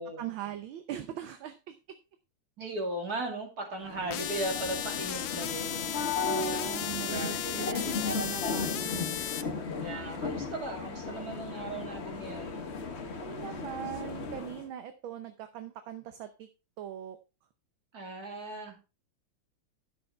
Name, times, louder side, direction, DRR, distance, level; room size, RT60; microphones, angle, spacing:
voice 1, 0.2-1.8 6.2-9.1 13.2-16.5 16.8-17.2, right 11 dB, 70° right, 9 dB, 1.6 m, -41 dB
voice 2, 2.6-5.9 7.0-7.7 9.8-12.6 17.9-18.8, right 2 dB, 45° right, 2 dB, 3.0 m, -37 dB
sound 1, 3.8-14.7, left 4 dB, 40° left, 1.0 m, -36 dB
sound 2, 4.1-9.4, left 11 dB, 75° left, 1.6 m, -35 dB
11.5 x 6.8 x 4.3 m, 0.30 s
omnidirectional pair, 2.4 m